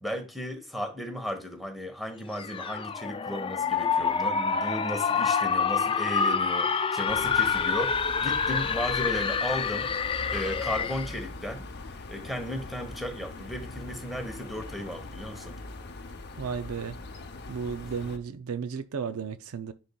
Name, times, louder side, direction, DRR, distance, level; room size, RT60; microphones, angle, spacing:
voice 1, 0.0-11.7 12.1-15.6, equal, ahead, 1.1 m, -35 dB
sound 1, 2.3-11.2, left 6 dB, 25° left, 0.3 m, -27 dB
sound 2, 7.1-18.2, left 2 dB, 50° left, 0.8 m, -41 dB
voice 2, 16.4-17.0 17.5-19.7, right 6 dB, 75° right, 0.5 m, -34 dB
9.9 x 4.2 x 2.3 m
head